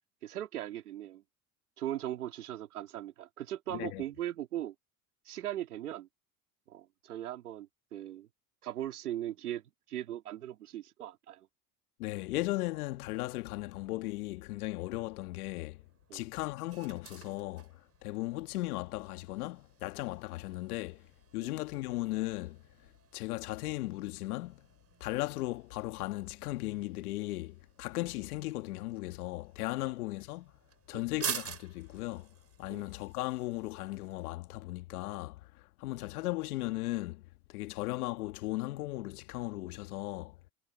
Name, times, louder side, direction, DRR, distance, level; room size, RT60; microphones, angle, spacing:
voice 1, 0.2-1.2 1.8-4.7 5.3-6.1 6.7-8.3 8.6-9.6 9.9-11.5 16.1-16.2 21.4-21.5 30.9-31.0 32.7-32.8, right 12 dB, 85° right, 3.7 m, -39 dB
voice 2, 3.7-4.0 12.0-15.8 16.1-17.7 18.0-21.0 21.3-22.6 23.1-24.6 25.0-30.5 30.9-32.3 32.6-35.5 35.8-37.2 37.5-40.4, left 19 dB, 80° left, 1.8 m, -36 dB
sound 1, 14.7-34.3, right 7 dB, 35° right, 6.4 m, -48 dB
hypercardioid pair, 70°, 44 cm